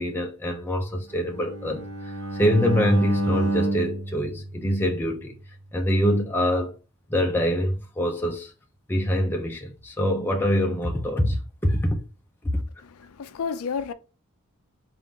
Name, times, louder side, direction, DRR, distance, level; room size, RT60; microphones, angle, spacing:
voice 1, 0.0-5.3 5.7-6.7 7.1-8.5 8.9-12.0 12.4-12.5, equal, 10° left, 0.4 m, -24 dB
Bowed string instrument, 1.1-5.3, right 3 dB, 70° right, 0.6 m, -29 dB
voice 2, 13.0-13.9, left 6 dB, 70° left, 0.4 m, -30 dB
3.6 x 2.5 x 3.8 m
head